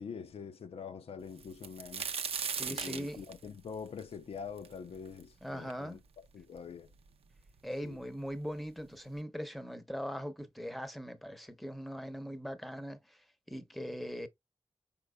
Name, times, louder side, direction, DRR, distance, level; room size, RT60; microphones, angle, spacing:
voice 1, 0.0-2.1 2.7-6.9 7.8-8.0, left 6 dB, 75° left, 0.5 m, -45 dB
sound 1, 1.4-5.2 5.7-5.8 6.6-6.7 6.9-7.6 8.5-8.6 9.0-9.2, right 6 dB, 85° right, 0.6 m, -38 dB
voice 2, 2.5-3.2 5.4-6.0 7.6-13.2 13.5-14.3, equal, ahead, 0.8 m, -40 dB
5.2 x 4.3 x 2.2 m
wide cardioid pair, 95°, 10 cm